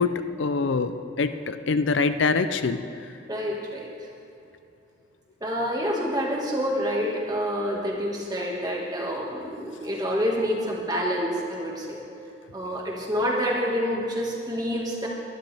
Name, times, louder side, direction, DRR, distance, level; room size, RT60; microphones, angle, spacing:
voice 1, 0.0-2.8, left 4 dB, 70° left, 10 dB, 0.5 m, -24 dB
voice 2, 3.3-3.9 5.4-12.0 12.5-15.1, equal, 20° right, -2 dB, 1.9 m, -27 dB
23.0 x 11.5 x 3.5 m, 2.7 s
head